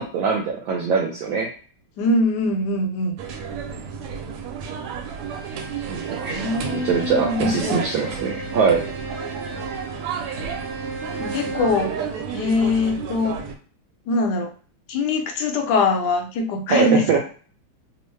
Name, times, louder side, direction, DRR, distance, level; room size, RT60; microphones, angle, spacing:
voice 1, 0.0-1.5 5.9-6.4 6.8-8.8 16.7-17.2, right 5 dB, 75° right, -1 dB, 1.2 m, -22 dB
voice 2, 2.0-3.1 6.3-7.8 11.2-11.9 12.3-13.4 14.1-14.5 14.9-17.2, left 3 dB, 70° left, 3 dB, 1.1 m, -22 dB
sound 1, 3.2-13.6, right 6 dB, 90° right, 1.5 m, -32 dB
Bowed string instrument, 5.1-11.9, right 3 dB, 55° right, 1.4 m, -36 dB
3.5 x 2.0 x 3.1 m, 0.41 s
omnidirectional pair, 2.4 m